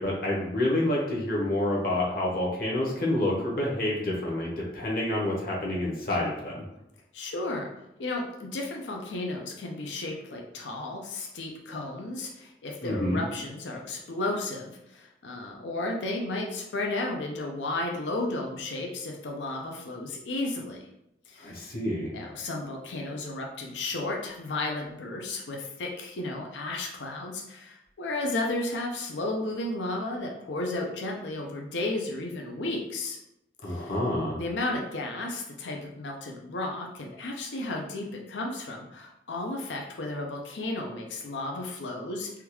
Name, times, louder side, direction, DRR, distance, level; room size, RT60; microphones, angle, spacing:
voice 1, 0.0-6.5 12.8-13.2 21.4-22.1 33.6-34.4, left 1 dB, 50° left, -4 dB, 0.9 m, -28 dB
voice 2, 7.1-7.7 8.0-20.8 21.3-21.7 22.1-33.2 33.6-33.9 34.4-42.3, left 2 dB, 80° left, 0 dB, 0.5 m, -33 dB
3.5 x 2.3 x 3.0 m, 0.83 s
head